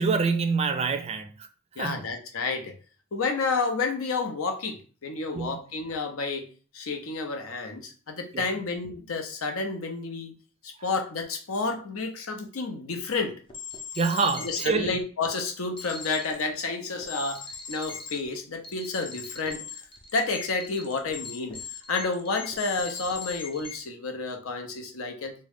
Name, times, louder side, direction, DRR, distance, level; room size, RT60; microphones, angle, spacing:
voice 1, 0.0-1.3 1.8-2.0 5.3-5.6 8.3-8.5 14.0-15.0, right 4 dB, 30° right, 0.3 m, -26 dB
voice 2, 1.8-2.7 3.1-6.5 6.7-10.3 10.6-13.4 14.4-17.4 17.7-19.6 20.1-21.6 21.9-25.3, left 4 dB, 85° left, 0.7 m, -30 dB
sound 1, 13.1-13.2 13.5-14.7 15.8-16.4 17.0-18.2 18.6-23.8, left 5 dB, 25° left, 0.5 m, -40 dB
3.6 x 2.2 x 3.4 m
head